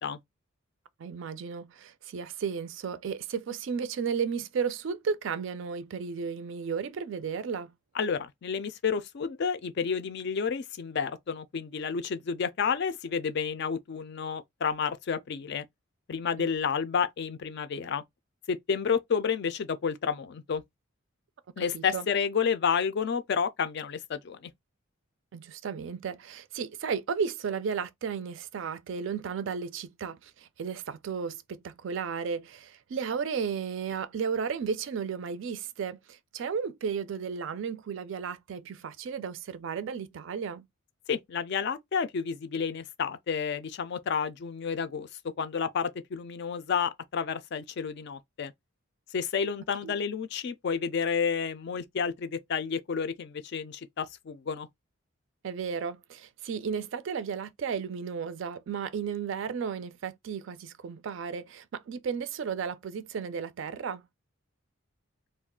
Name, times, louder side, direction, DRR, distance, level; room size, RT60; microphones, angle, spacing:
voice 1, 1.0-7.7 16.4-16.5 21.6-22.1 25.3-40.7 49.8-49.9 55.4-64.0, right 6 dB, 60° right, 0.3 m, -34 dB
voice 2, 7.9-15.6 16.1-18.0 18.5-20.6 21.6-24.5 41.1-45.1 45.4-48.5 49.1-54.7, left 6 dB, 50° left, 0.3 m, -30 dB
2.4 x 2.2 x 3.6 m
head